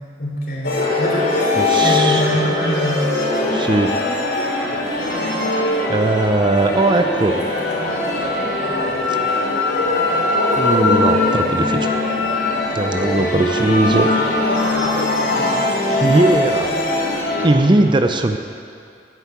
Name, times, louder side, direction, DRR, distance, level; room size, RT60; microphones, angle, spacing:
voice 1, 0.2-3.0, equal, 55° left, -3 dB, 3.5 m, -23 dB
sound 1, 0.6-17.5, left 2 dB, 80° left, 3.7 m, -20 dB
voice 2, 1.6-2.2 3.5-3.9 5.9-7.4 10.6-11.9 12.7-14.1 15.9-16.7 17.4-18.4, right 2 dB, 25° right, 6 dB, 0.6 m, -18 dB
10.5 x 9.2 x 8.4 m, 2.3 s
head